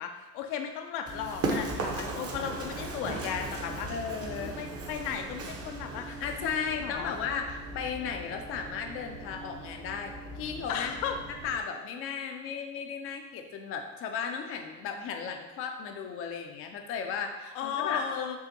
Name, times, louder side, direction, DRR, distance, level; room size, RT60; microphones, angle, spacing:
voice 1, 0.0-3.9 4.4-6.1 6.4-7.1 10.7-11.2 17.5-18.4, left 8 dB, 65° left, 5 dB, 0.7 m, -35 dB
Run, 1.1-11.6, right 2 dB, 30° right, 0.8 m, -38 dB
voice 2, 3.9-4.6 6.1-11.0 11.4-18.4, left 6 dB, 30° left, 4 dB, 0.5 m, -35 dB
7.0 x 2.5 x 2.7 m, 1.1 s
hypercardioid pair, 80°, 49 cm